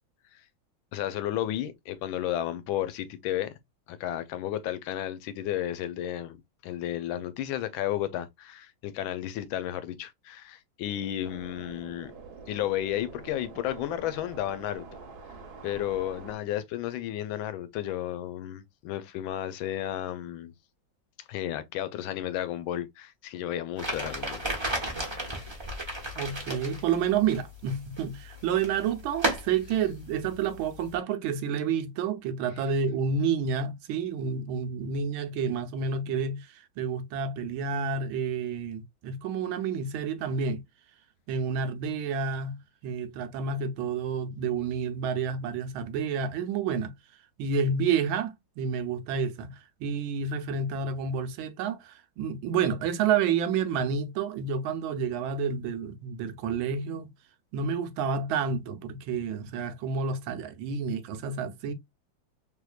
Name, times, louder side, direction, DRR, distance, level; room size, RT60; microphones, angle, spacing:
voice 1, 0.9-3.6 3.9-6.4 6.6-12.1 12.5-14.9 15.6-20.5 21.3-24.5, left 12 dB, 80° left, 1.3 m, -33 dB
sound 1, 11.2-16.4, right 4 dB, 60° right, 1.2 m, -46 dB
sound 2, 23.8-31.0, right 1 dB, 20° right, 0.7 m, -35 dB
voice 2, 26.2-40.6 41.3-46.9 47.4-57.1 57.5-61.7, right 6 dB, 80° right, 1.4 m, -29 dB
3.6 x 3.2 x 2.3 m
omnidirectional pair, 2.2 m